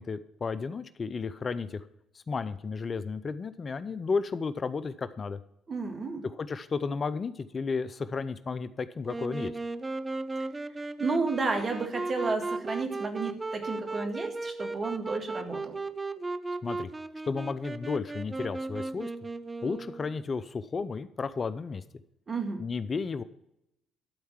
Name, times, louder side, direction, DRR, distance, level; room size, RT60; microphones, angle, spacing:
voice 1, 0.0-1.9 2.1-5.4 6.2-9.6 16.6-16.9 17.2-19.1 19.6-21.8 22.6-23.2, left 4 dB, 40° left, 14 dB, 0.5 m, -33 dB
voice 2, 5.7-6.2 11.0-15.8 22.3-22.7, right 4 dB, 40° right, 5 dB, 2.0 m, -32 dB
Wind instrument woodwind instrument, 9.1-20.2, right 2 dB, 20° right, 0.6 m, -36 dB
12.0 x 4.6 x 7.3 m, 0.82 s
hypercardioid pair, 55°, 0 cm